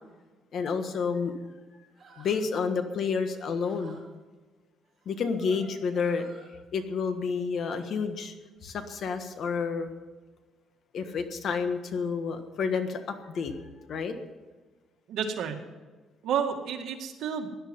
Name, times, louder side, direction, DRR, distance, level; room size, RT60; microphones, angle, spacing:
voice 1, 0.5-1.3 2.2-4.0 5.0-6.3 6.7-8.3 8.6-9.9 10.9-13.5 13.9-14.1, left 5 dB, 50° left, 8 dB, 1.5 m, -30 dB
sound 1, 1.9-2.5 3.2-4.0 5.0-6.5, right 3 dB, 25° right, 5.7 m, -54 dB
voice 2, 15.1-15.6 16.2-17.5, right 7 dB, 75° right, 3 dB, 2.1 m, -30 dB
17.0 x 11.0 x 5.5 m, 1.3 s
cardioid pair, 145°, 0 cm